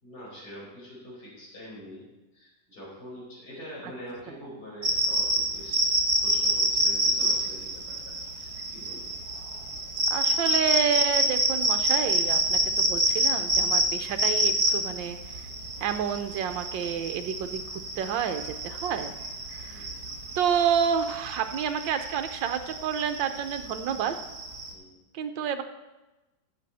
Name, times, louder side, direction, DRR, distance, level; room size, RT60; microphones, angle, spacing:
voice 1, 0.0-2.0 2.3-5.9 6.2-9.1 19.7-20.0 24.7-24.9, equal, 55° left, -6 dB, 5.3 m, -44 dB
sound 1, 4.8-24.7, right 1 dB, 55° right, 1.9 m, -27 dB
voice 2, 10.1-15.4 15.8-19.1 19.5-19.9 20.4-24.1 25.1-25.6, right 8 dB, 75° right, 8 dB, 1.5 m, -29 dB
14.0 x 7.8 x 4.2 m, 1.0 s
omnidirectional pair, 2.1 m